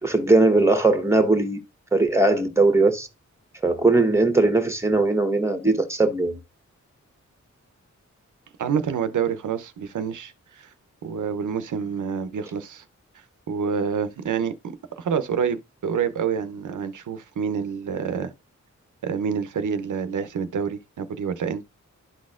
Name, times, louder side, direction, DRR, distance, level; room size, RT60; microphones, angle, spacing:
voice 1, 0.0-1.6 1.9-3.1 3.6-6.4, right 2 dB, 10° right, 1.3 m, -19 dB
voice 2, 8.6-10.7 11.0-12.8 13.5-18.3 19.0-21.7, right 7 dB, 80° right, 0.7 m, -27 dB
12.0 x 4.2 x 2.4 m
wide cardioid pair, 85°, 30 cm